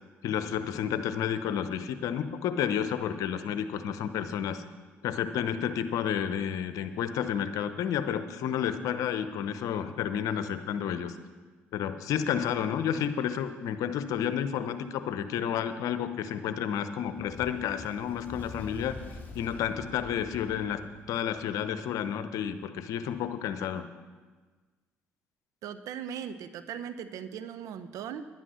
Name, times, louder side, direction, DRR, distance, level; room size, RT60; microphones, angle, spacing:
voice 1, 0.2-4.6 5.0-11.1 11.7-18.9 19.3-20.8 21.1-23.8, left 9 dB, 65° left, 11 dB, 0.9 m, -31 dB
Fire, 17.1-21.7, left 4 dB, 25° left, 3.4 m, -46 dB
voice 2, 25.6-28.2, right 8 dB, 65° right, 11 dB, 0.8 m, -38 dB
11.0 x 10.5 x 6.3 m, 1.4 s
hypercardioid pair, 55°, 6 cm